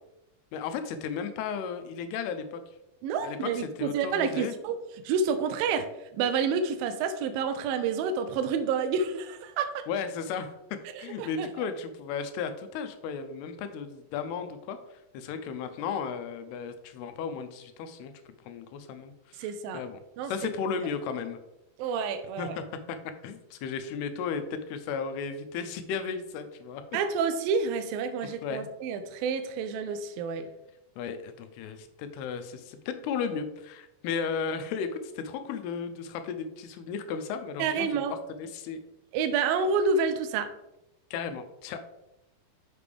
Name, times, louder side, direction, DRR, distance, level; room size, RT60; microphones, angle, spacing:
voice 1, 0.5-2.6 3.2-4.5 9.9-10.6 11.0-18.1 18.5-21.4 22.4-23.0 23.2-26.8 28.2-28.7 31.0-38.8 41.1-41.8, left 6 dB, 80° left, 9 dB, 2.5 m, -35 dB
voice 2, 3.0-4.8 5.0-5.9 6.1-9.8 11.0-11.5 19.4-19.8 20.2-20.3 21.8-22.6 26.9-30.5 37.6-38.2 39.1-40.5, right 5 dB, 90° right, 8 dB, 2.1 m, -29 dB
6.7 x 6.0 x 3.4 m, 0.89 s
omnidirectional pair, 4.8 m